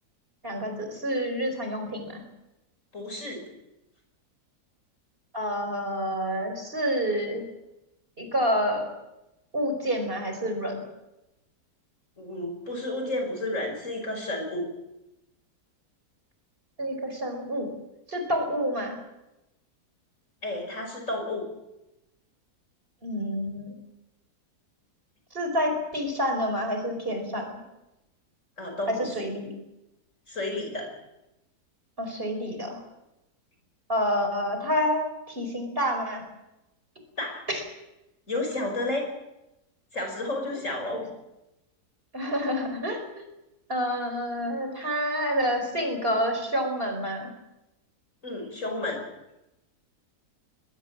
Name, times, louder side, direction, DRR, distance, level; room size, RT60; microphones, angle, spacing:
voice 1, 0.4-2.2 5.3-7.4 8.2-8.9 9.5-10.8 16.8-17.7 18.1-19.0 23.0-23.8 25.3-27.5 28.9-29.5 32.0-32.8 33.9-36.2 37.5-37.6 40.5-40.6 40.9-41.0 42.1-43.3 43.7-47.3, equal, 35° right, 5 dB, 5.2 m, -28 dB
voice 2, 2.9-3.4 12.2-14.7 20.4-21.5 28.6-29.2 30.3-30.9 37.2-37.4 38.3-39.1 39.9-41.0 48.2-49.0, left 2 dB, 50° left, 3 dB, 6.1 m, -31 dB
22.0 x 21.0 x 7.5 m, 0.93 s
omnidirectional pair, 1.7 m